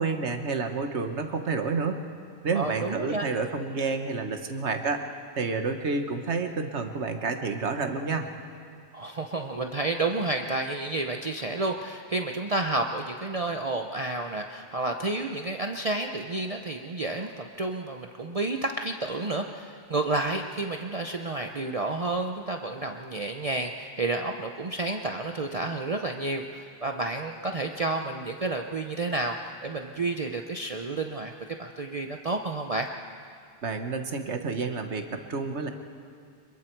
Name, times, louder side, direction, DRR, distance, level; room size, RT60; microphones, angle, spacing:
voice 1, 0.0-2.0 2.4-8.3 33.6-35.7, right 4 dB, 90° right, 6 dB, 1.6 m, -29 dB
voice 2, 2.5-3.3 8.9-31.3 31.6-32.9, right 2 dB, 35° right, 3 dB, 0.8 m, -30 dB
26.5 x 22.5 x 4.6 m, 2.3 s
omnidirectional pair, 1.1 m